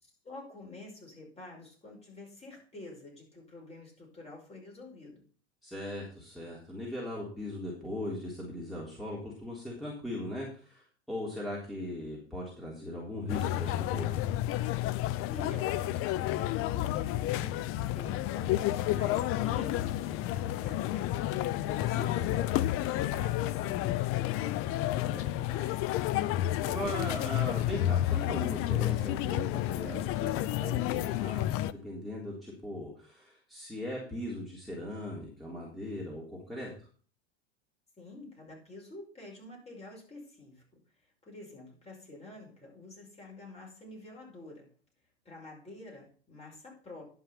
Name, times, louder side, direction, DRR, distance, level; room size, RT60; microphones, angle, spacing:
voice 1, 0.0-5.3 15.3-25.9 38.0-40.6 41.2-44.7 45.3-47.2, left 2 dB, 20° left, -1 dB, 5.3 m, -48 dB
voice 2, 5.6-14.2 21.9-22.1 26.6-36.9, left 1 dB, ahead, -5 dB, 3.4 m, -39 dB
sound 1, 13.3-31.7, left 14 dB, 45° left, 0.7 m, -30 dB
11.5 x 5.9 x 5.8 m, 0.42 s
supercardioid pair, 110°, 31 cm